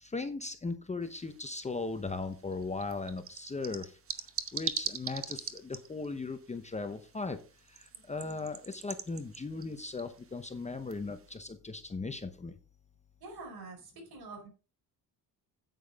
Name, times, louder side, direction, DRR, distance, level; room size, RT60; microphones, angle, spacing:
voice 1, 0.0-4.0 4.5-7.4 7.7-12.5, left 3 dB, 15° left, 8 dB, 0.8 m, -38 dB
sound 1, 1.0-11.4, right 7 dB, 30° right, 1.0 m, -43 dB
voice 2, 13.2-14.5, right 3 dB, 60° right, 3 dB, 4.8 m, -47 dB
9.2 x 8.6 x 3.5 m, 0.33 s
cardioid pair, 130°, 42 cm